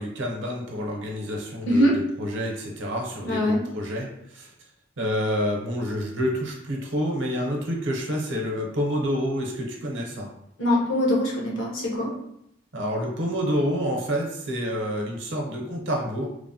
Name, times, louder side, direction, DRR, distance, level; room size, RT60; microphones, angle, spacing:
voice 1, 0.0-4.5 5.0-10.3 12.7-16.3, equal, 65° right, 0 dB, 0.6 m, -28 dB
voice 2, 3.2-3.6 10.6-12.1, left 1 dB, 70° left, -3 dB, 0.8 m, -22 dB
3.0 x 2.0 x 2.7 m, 0.78 s
head